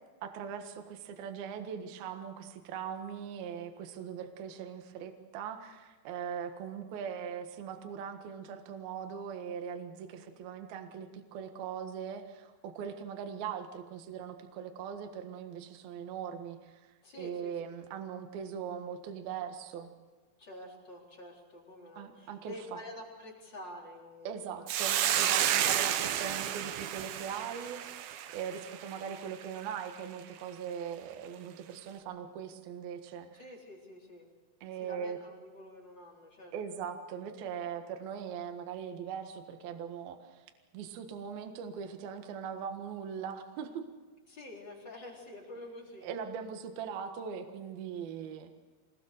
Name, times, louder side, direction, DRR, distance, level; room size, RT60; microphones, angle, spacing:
voice 1, 0.2-16.9 17.2-19.9 22.0-22.5 24.2-33.4 34.6-35.2 36.5-40.4 40.7-43.8 46.0-48.5, right 7 dB, 60° right, 5 dB, 2.9 m, -40 dB
voice 2, 17.0-17.6 20.4-24.7 33.3-34.3 34.7-36.8 44.3-46.1, left 1 dB, 25° left, -2 dB, 3.9 m, -48 dB
Hiss, 24.7-29.2, right 11 dB, 85° right, 2.1 m, -31 dB
25.5 x 20.0 x 6.6 m, 1.3 s
omnidirectional pair, 5.8 m